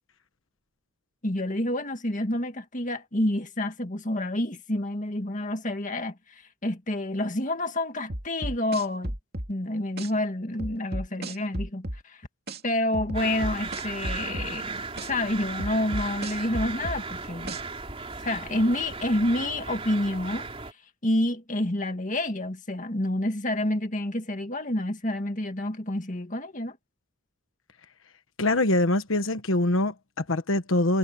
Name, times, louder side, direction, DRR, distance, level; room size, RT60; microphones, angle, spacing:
voice 1, 1.2-9.1 9.5-12.2 12.6-17.6 18.2-20.5 21.0-26.8, left 1 dB, 40° left, 2.0 m, -28 dB
sound 1, 8.1-9.5 10.0-10.1 10.6-12.0 12.5-12.6 12.9-14.5 15.0-15.1 15.6-17.0 17.5-17.6, right 1 dB, 50° right, 2.6 m, -33 dB
sound 2, 13.1-20.7, right 4 dB, 30° right, 3.7 m, -36 dB
voice 2, 28.4-31.0, left 2 dB, 80° left, 1.3 m, -24 dB
head